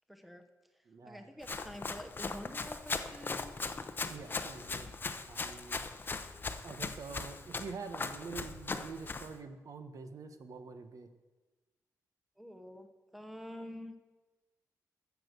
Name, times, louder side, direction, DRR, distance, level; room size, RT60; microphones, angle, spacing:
voice 1, 0.1-0.4 1.0-3.5 12.4-12.9 13.1-13.9, equal, ahead, 7 dB, 0.9 m, -47 dB
voice 2, 0.9-1.3 4.1-4.9 5.2-5.8 6.6-11.1, right 4 dB, 60° right, 8 dB, 1.0 m, -46 dB
Run, 1.4-9.3, left 4 dB, 30° left, 0.7 m, -39 dB
14.5 x 7.1 x 6.6 m, 1.2 s
wide cardioid pair, 140°, 7 cm